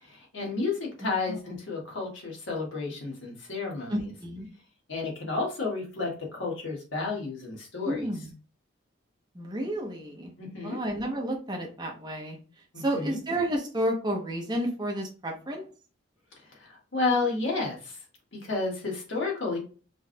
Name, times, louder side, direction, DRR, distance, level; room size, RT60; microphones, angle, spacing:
voice 1, 0.0-4.1 4.9-8.1 10.4-10.8 12.7-13.2 16.5-18.0 18.3-19.6, left 3 dB, 60° left, -2 dB, 1.6 m, -31 dB
voice 2, 1.0-1.4 3.9-4.5 7.8-8.3 9.3-10.3 10.6-12.4 12.8-15.7, right 1 dB, 20° right, 0 dB, 0.8 m, -31 dB
5.0 x 3.2 x 2.2 m, 0.37 s
head